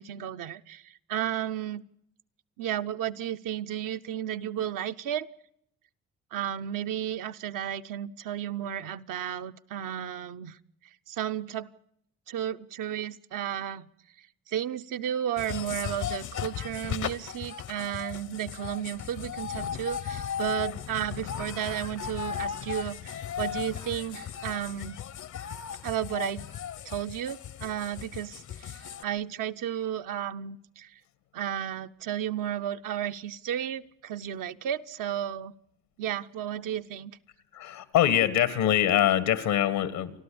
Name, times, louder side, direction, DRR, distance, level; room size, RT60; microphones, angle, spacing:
voice 1, 0.0-1.8 2.6-5.3 6.3-10.6 11.1-11.7 12.3-13.9 14.2-25.0 25.8-26.4 26.8-30.9 31.3-35.5 36.0-37.2, right 10 dB, 70° right, 9 dB, 0.8 m, -33 dB
sound 1, 15.4-29.0, left 8 dB, 60° left, 0.9 m, -36 dB
voice 2, 37.5-40.1, left 10 dB, 85° left, 14 dB, 1.8 m, -24 dB
30.0 x 12.0 x 8.6 m, 0.76 s
supercardioid pair, 65°, 34 cm